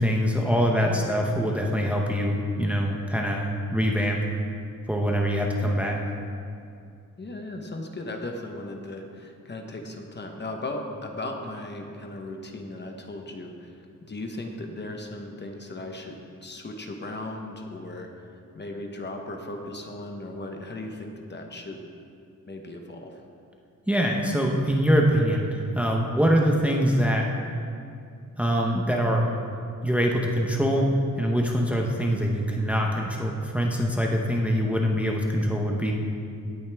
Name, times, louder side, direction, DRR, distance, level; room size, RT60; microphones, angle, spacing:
voice 1, 0.0-4.2 4.9-6.0 23.9-27.3 28.4-29.4 29.8-35.9, equal, 5° right, 0 dB, 0.8 m, -24 dB
voice 2, 7.2-21.8 22.5-23.2, left 2 dB, 30° left, 3 dB, 1.0 m, -37 dB
17.0 x 9.2 x 3.4 m, 2.4 s
wide cardioid pair, 170°, 33 cm